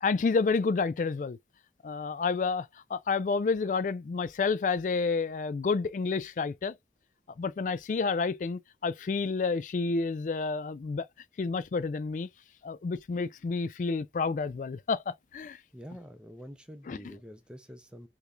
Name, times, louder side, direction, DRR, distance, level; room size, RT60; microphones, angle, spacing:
voice 1, 0.0-1.4 1.8-6.7 7.4-11.1 11.4-12.3 12.6-15.6 16.9-17.0, left 4 dB, 45° left, 0.3 m, -29 dB
voice 2, 15.7-18.1, equal, 5° right, 0.5 m, -46 dB
3.4 x 3.0 x 2.4 m
head